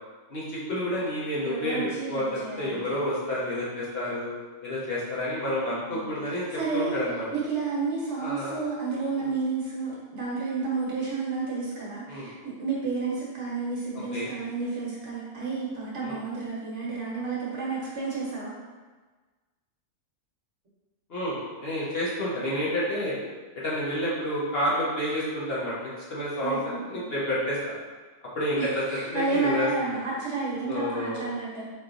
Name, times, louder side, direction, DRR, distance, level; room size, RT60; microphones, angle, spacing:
voice 1, 0.3-4.3 4.6-6.4 6.7-7.2 8.2-8.6 9.2-9.3 12.1-12.3 14.1-14.3 16.0-16.2 21.1-23.1 23.5-27.6 28.3-29.7 30.7-31.3, left 1 dB, 50° left, -7 dB, 1.1 m, -29 dB
voice 2, 1.4-2.8 5.9-7.0 7.3-18.5 26.4-27.1 28.6-31.7, right 4 dB, 60° right, -6 dB, 1.3 m, -31 dB
4.3 x 3.1 x 2.6 m, 1.3 s
omnidirectional pair, 1.4 m